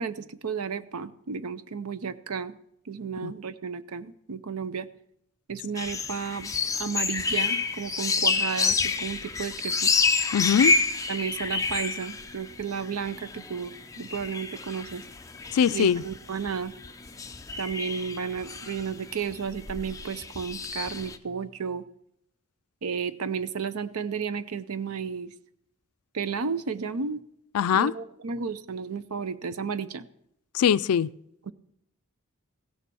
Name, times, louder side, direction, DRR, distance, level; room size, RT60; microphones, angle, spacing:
voice 1, 0.0-2.6 2.9-4.9 5.5-9.9 11.1-15.0 15.7-16.7 17.6-21.8 22.8-25.3 26.1-27.2 27.7-30.0 31.5-31.6, right 6 dB, 80° right, 15 dB, 0.6 m, -33 dB
sound 1, 5.8-21.2, left 4 dB, 15° left, 0.5 m, -29 dB
voice 2, 10.3-10.8 15.5-16.0 27.5-27.9 30.5-31.1, left 8 dB, 80° left, 17 dB, 0.4 m, -22 dB
16.0 x 6.9 x 6.2 m, 0.77 s
head